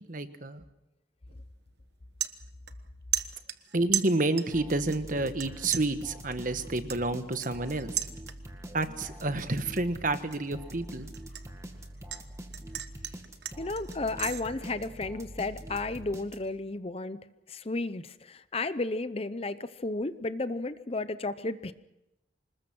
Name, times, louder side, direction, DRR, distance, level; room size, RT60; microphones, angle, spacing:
voice 1, 0.1-0.6 3.7-7.9 8.7-11.1, right 2 dB, 45° right, 10 dB, 1.3 m, -29 dB
sound 1, 1.3-1.5 1.9-2.9 3.1-4.6 4.9-5.5 5.7-8.6 9.0-9.4 9.8-12.2 12.5-14.4, right 11 dB, 60° right, 1.2 m, -35 dB
sound 2, 4.5-16.7, right 1 dB, 15° right, 2.0 m, -44 dB
voice 2, 13.6-17.2 17.5-21.7, left 2 dB, 30° left, 13 dB, 0.7 m, -33 dB
26.5 x 20.5 x 6.2 m, 0.92 s
head